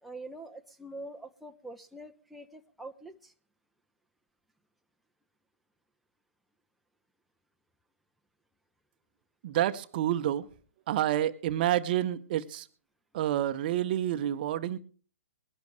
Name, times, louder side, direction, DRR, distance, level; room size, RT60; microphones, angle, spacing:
voice 1, 0.0-3.3, right 2 dB, ahead, 0.8 m, -45 dB
voice 2, 9.4-10.5 10.9-12.7 13.1-14.8, right 12 dB, 40° right, 0.9 m, -28 dB
21.5 x 11.5 x 3.2 m
figure-of-eight pair, 125°, 8 cm